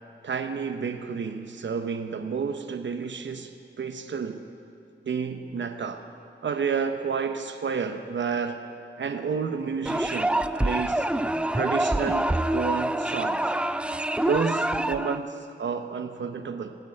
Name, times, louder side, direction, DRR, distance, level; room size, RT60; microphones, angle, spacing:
voice 1, 0.2-4.5 5.0-6.0 6.4-8.6 9.0-11.1 11.5-13.5 14.3-16.8, right 6 dB, 65° right, 0.9 m, -30 dB
sound 1, 9.9-15.2, right 1 dB, 5° right, 0.3 m, -26 dB
17.5 x 6.1 x 9.2 m
wide cardioid pair, 90°, 20 cm